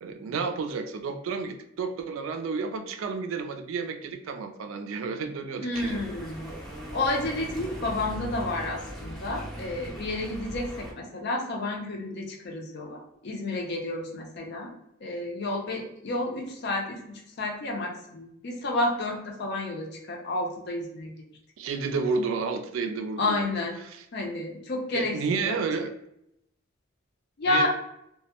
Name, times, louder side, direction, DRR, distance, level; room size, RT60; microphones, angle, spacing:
voice 1, 0.0-6.0 21.6-23.5 23.8-24.0 24.9-25.9 27.5-27.7, right 4 dB, 90° right, 6 dB, 0.3 m, -31 dB
voice 2, 5.6-6.4 6.9-14.7 15.0-17.0 17.4-21.1 23.2-23.8 24.1-25.6 27.4-27.7, left 2 dB, 60° left, 1 dB, 0.5 m, -30 dB
sound 1, 5.7-10.9, equal, ahead, 0.5 m, -39 dB
2.2 x 2.0 x 2.8 m, 0.78 s
head